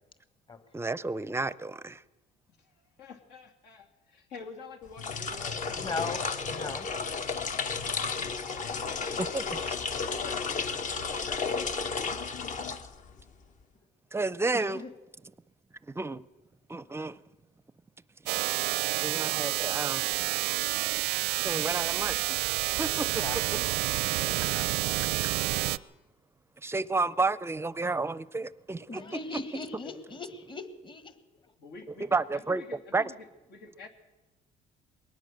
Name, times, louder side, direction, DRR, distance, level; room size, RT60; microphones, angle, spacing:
voice 1, 0.7-2.0 9.2-9.6 14.1-14.8 16.0-16.2 16.7-17.2 19.0-20.1 21.4-22.3 22.8-23.1 26.6-29.2 32.1-32.6 32.9-33.1, right 3 dB, 15° right, 0.6 m, -31 dB
voice 2, 2.6-6.7 8.7-11.8 29.8-30.0 31.6-33.9, left 4 dB, 80° left, 2.8 m, -47 dB
sound 1, 4.9-13.3, left 5 dB, 50° left, 1.2 m, -33 dB
voice 3, 5.8-6.2 6.5-6.9 14.5-14.9 22.9-24.7 28.9-31.2, left 4 dB, 30° left, 1.6 m, -39 dB
sound 2, 18.3-25.8, right 18 dB, 90° right, 0.6 m, -29 dB
21.5 x 18.5 x 6.6 m
cardioid pair, 110°, 17 cm